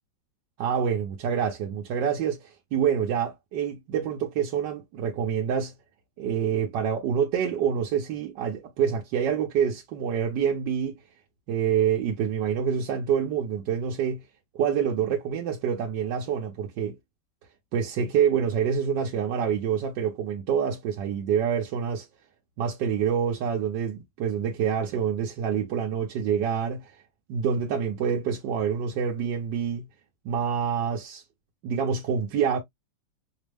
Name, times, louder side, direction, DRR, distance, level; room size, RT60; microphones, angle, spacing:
voice 1, 0.6-5.7 6.2-11.0 11.5-14.2 14.5-17.0 17.7-22.1 22.6-26.9 27.3-29.9 30.2-31.2 31.6-32.6, right 7 dB, 65° right, 1.2 m, -26 dB
5.2 x 2.0 x 3.3 m
omnidirectional pair, 2.2 m